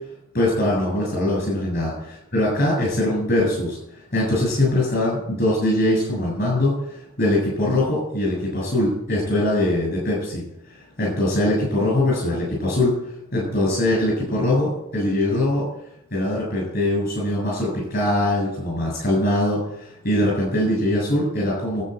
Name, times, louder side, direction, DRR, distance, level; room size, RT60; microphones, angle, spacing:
voice 1, 0.3-1.9 2.3-3.8 4.1-15.7 16.1-21.8, left 1 dB, 45° left, -3 dB, 7.5 m, -22 dB
13.5 x 8.2 x 8.1 m, 0.76 s
head